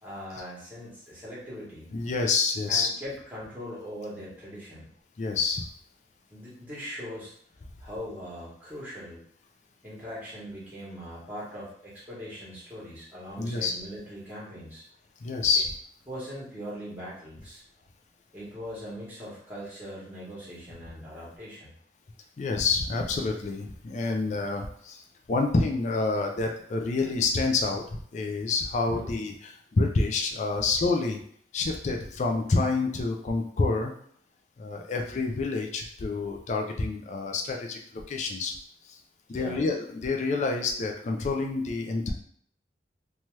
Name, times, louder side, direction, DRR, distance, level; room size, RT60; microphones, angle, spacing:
voice 1, 0.0-1.9 2.7-4.9 6.3-7.3 7.8-9.2 9.8-14.8 16.1-17.6 18.3-21.7 28.8-29.1 39.3-39.6, equal, 10° right, -8 dB, 1.1 m, -40 dB
voice 2, 1.9-2.9 5.2-5.6 13.4-13.7 15.2-15.7 22.4-25.0 25.3-27.8 28.1-31.2 31.5-33.9 34.6-38.5 38.9-39.0 39.3-42.1, left 3 dB, 40° left, 2 dB, 0.3 m, -28 dB
2.7 x 2.3 x 3.1 m, 0.62 s
head